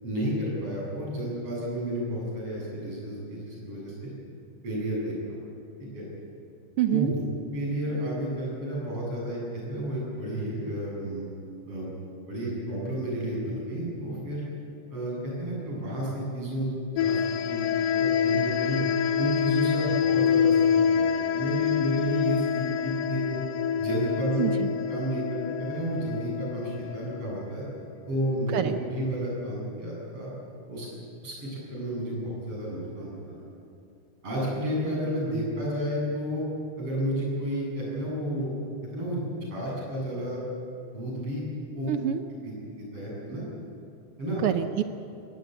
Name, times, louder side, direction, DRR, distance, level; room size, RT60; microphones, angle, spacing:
voice 1, 0.0-4.1 4.6-5.4 5.9-6.0 6.9-7.2 7.5-11.2 11.7-11.9 12.3-14.5 14.9-16.7 17.0-18.8 19.2-23.4 23.8-24.4 24.9-27.6 28.1-30.3 30.7-30.9 31.2-33.4 34.2-36.4 36.8-38.5 38.9-40.4 40.9-41.4 41.7-41.9 42.4-42.5 42.8-43.4 44.2-44.4, equal, 50° right, -4 dB, 8.9 m, -31 dB
voice 2, 6.8-7.1 24.4-24.7 28.5-28.8 41.9-42.2 44.4-44.8, right 11 dB, 85° right, 9 dB, 1.2 m, -26 dB
sound 1, 17.0-27.4, left 7 dB, 70° left, 1.6 m, -26 dB
20.5 x 19.0 x 8.2 m, 2.5 s
omnidirectional pair, 3.4 m